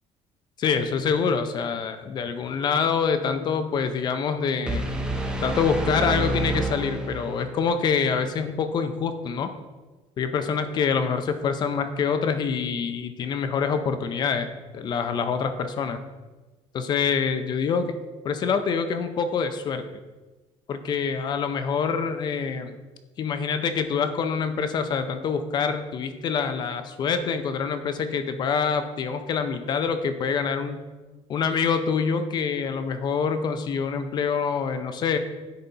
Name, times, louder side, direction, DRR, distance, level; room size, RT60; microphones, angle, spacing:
voice 1, 0.6-4.8 5.4-9.5 10.2-16.0 16.7-17.9 18.2-19.8 20.7-22.8 23.2-30.8 31.3-35.2, left 6 dB, 35° left, 9 dB, 0.6 m, -26 dB
sound 1, 4.7-7.6, right 2 dB, 5° right, 0.6 m, -28 dB
10.5 x 4.2 x 4.1 m, 1.2 s
cardioid pair, 170°, 12 cm